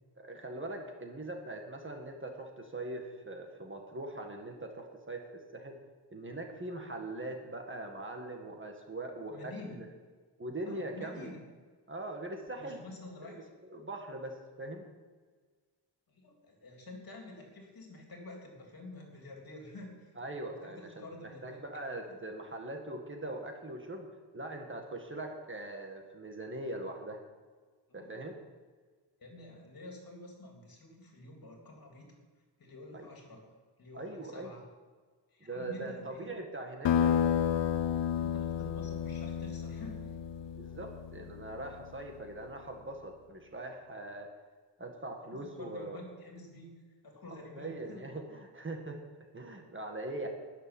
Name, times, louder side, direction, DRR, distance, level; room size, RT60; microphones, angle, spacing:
voice 1, 0.2-5.8 6.1-9.9 10.4-11.3 11.9-12.8 13.2-13.4 13.7-14.9 20.2-24.1 24.3-27.2 27.9-28.4 32.9-33.1 33.9-34.5 35.4-37.3 40.5-44.3 44.8-46.0 47.6-49.0 49.3-50.3, right 2 dB, 25° right, 3 dB, 1.7 m, -41 dB
voice 2, 9.3-9.8 10.7-11.4 12.6-13.4 16.1-20.1 20.5-21.7 27.9-28.2 29.2-32.1 32.6-33.4 33.8-34.6 35.3-36.3 38.1-40.0 45.2-46.7 47.0-48.1, left 2 dB, 50° left, 0 dB, 3.4 m, -49 dB
sound 1, 36.9-42.0, left 9 dB, 75° left, 0.7 m, -31 dB
13.0 x 6.8 x 9.8 m, 1.5 s
wide cardioid pair, 175°, 44 cm